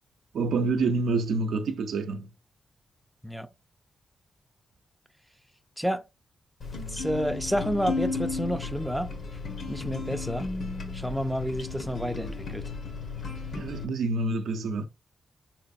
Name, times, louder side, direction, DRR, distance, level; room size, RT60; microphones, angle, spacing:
voice 1, 0.3-2.3 13.5-14.9, right 3 dB, 85° right, 0.5 m, -27 dB
sound 1, 6.6-13.8, left 4 dB, 65° left, 1.0 m, -34 dB
voice 2, 6.9-9.1 9.7-10.5 10.9-12.6, equal, ahead, 0.3 m, -30 dB
3.9 x 3.0 x 2.5 m
cardioid pair, 90°, 0 cm